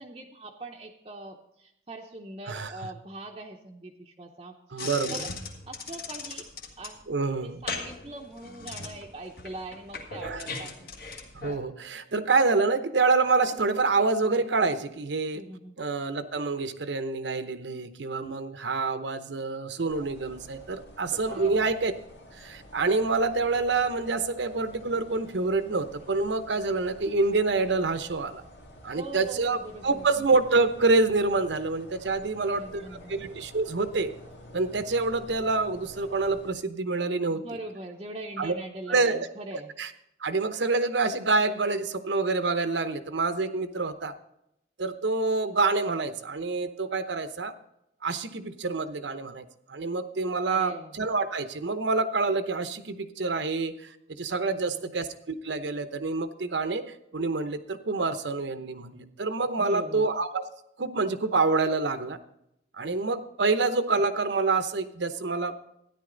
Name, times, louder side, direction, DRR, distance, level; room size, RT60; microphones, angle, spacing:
voice 1, 0.0-5.3 5.7-6.5 6.8-7.0 7.4-10.7 15.3-15.7 21.3-21.7 28.9-30.1 32.3-33.2 37.3-39.7 50.5-51.0 54.5-54.9 59.6-60.1, right 2 dB, 30° right, 0 dB, 0.7 m, -42 dB
voice 2, 4.7-5.2 7.1-7.5 10.2-10.4 11.3-15.4 15.8-21.9 22.4-28.4 28.8-29.6 29.8-32.8 33.1-34.1 34.5-37.4 38.4-38.5 38.9-39.3 39.8-39.9 40.2-44.1 44.8-47.5 48.0-56.8 57.1-60.5 60.8-62.2 62.8-65.5, right 3 dB, 80° right, 10 dB, 0.9 m, -27 dB
sound 1, 4.8-11.6, left 4 dB, 55° left, 1.6 m, -39 dB
sound 2, 19.9-36.5, equal, 75° left, 2.2 m, -48 dB
13.0 x 10.5 x 3.9 m, 0.79 s
head